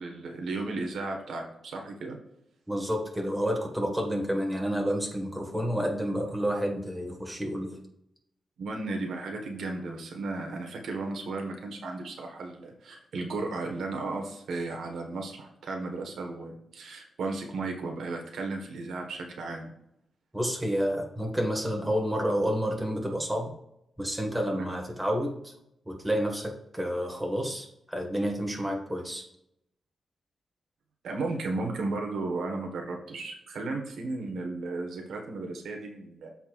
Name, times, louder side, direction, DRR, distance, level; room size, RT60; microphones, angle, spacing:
voice 1, 0.0-2.2 8.6-19.7 31.0-36.3, right 3 dB, 85° right, 2 dB, 1.4 m, -34 dB
voice 2, 2.7-7.8 20.3-23.5 24.0-25.5 25.9-29.2, equal, 5° right, 0 dB, 1.8 m, -29 dB
13.5 x 4.5 x 2.5 m, 0.78 s
wide cardioid pair, 125°, 0 cm